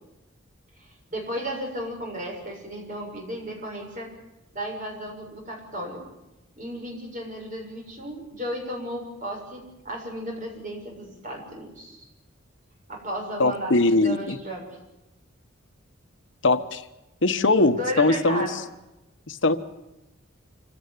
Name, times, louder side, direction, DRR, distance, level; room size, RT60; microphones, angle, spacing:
voice 1, 0.8-4.1 4.5-6.0 6.6-12.0 12.9-14.7 17.6-18.6, equal, 40° right, 0 dB, 7.1 m, -34 dB
voice 2, 13.4-14.4 16.4-16.8 17.2-18.5 19.3-19.6, left 2 dB, 65° left, 10 dB, 1.2 m, -21 dB
26.5 x 17.0 x 9.6 m, 0.98 s
head